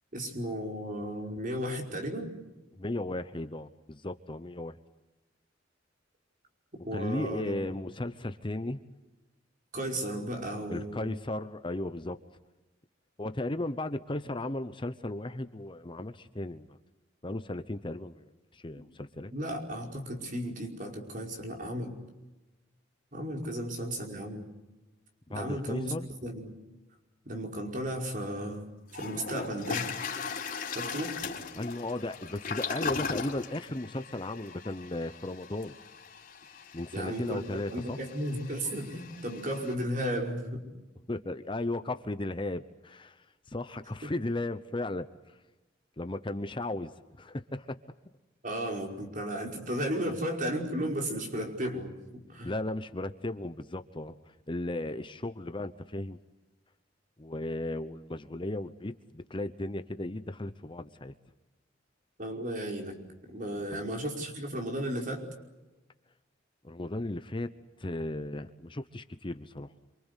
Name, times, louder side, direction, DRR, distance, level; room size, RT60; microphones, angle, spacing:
voice 1, 0.1-2.3 6.9-7.6 9.7-11.1 19.3-21.9 23.1-24.5 25.3-25.9 26.2-26.5 27.3-29.9 30.7-31.2 36.9-40.6 48.4-52.0 52.3-52.5 62.2-63.0 63.3-65.2, equal, 45° right, 2 dB, 5.3 m, -34 dB
voice 2, 2.7-4.8 6.9-8.8 10.7-12.2 13.2-16.8 17.2-18.3 18.5-19.3 25.3-26.1 31.5-35.8 36.7-38.0 41.1-45.1 46.0-46.9 47.2-47.8 52.4-54.1 54.5-56.2 57.2-61.1 63.7-63.8 66.6-67.5 67.8-69.7, left 2 dB, 25° left, 10 dB, 0.9 m, -35 dB
Toilet flush, 28.4-28.5 28.9-39.7, left 5 dB, 45° left, 3.7 m, -39 dB
27.0 x 25.5 x 8.2 m, 1.1 s
head